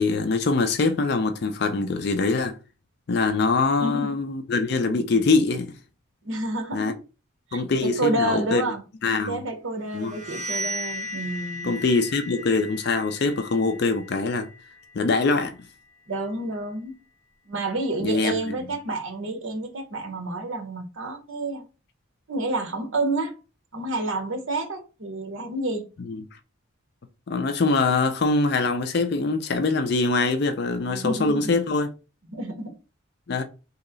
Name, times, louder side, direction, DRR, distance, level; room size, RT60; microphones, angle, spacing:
voice 1, 0.0-2.6 3.1-5.7 6.7-6.9 7.5-8.6 9.0-9.4 9.9-10.2 11.6-14.5 14.9-15.6 18.0-18.6 26.0-26.2 27.3-31.9 33.3-33.4, left 3 dB, 50° left, 0.4 m, -23 dB
voice 2, 3.8-4.2 6.2-7.0 7.5-8.9 9.3-11.7 16.1-17.0 17.5-21.7 22.3-23.3 23.7-25.9 30.8-31.5 32.3-32.7, right 2 dB, 70° right, 0.9 m, -29 dB
sound 1, 9.9-15.6, left 1 dB, 35° right, 0.6 m, -36 dB
3.1 x 2.8 x 3.8 m
head